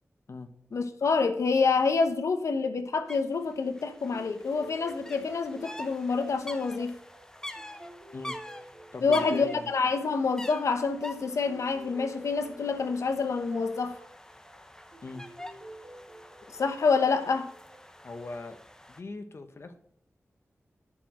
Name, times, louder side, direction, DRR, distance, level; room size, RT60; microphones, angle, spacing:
voice 1, 0.7-7.0 9.0-14.0 16.5-17.5, left 4 dB, 85° left, 0.9 m, -27 dB
sound 1, 3.1-3.2 3.5-19.0, left 1 dB, 10° left, 0.9 m, -46 dB
sound 2, 3.9-18.7, right 2 dB, 55° right, 3.1 m, -51 dB
voice 2, 8.9-9.7 15.0-15.2 18.0-18.6 18.9-19.8, left 3 dB, 55° left, 1.0 m, -40 dB
11.0 x 4.9 x 7.4 m
wide cardioid pair, 80°, 5 cm